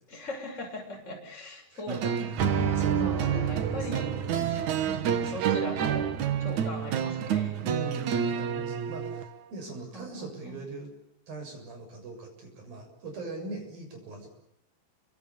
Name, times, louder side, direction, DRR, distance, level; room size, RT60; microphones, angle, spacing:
voice 1, 0.1-2.5 3.0-4.2 4.8-6.1 6.4-7.6 9.7-10.6, left 1 dB, 15° left, 1 dB, 6.9 m, -40 dB
sound 1, 1.9-9.3, right 8 dB, 85° right, 1.7 m, -28 dB
voice 2, 2.4-5.6 7.6-10.9 11.3-14.3, right 2 dB, 45° right, 4 dB, 8.5 m, -40 dB
29.5 x 25.0 x 7.1 m, 0.78 s
omnidirectional pair, 5.9 m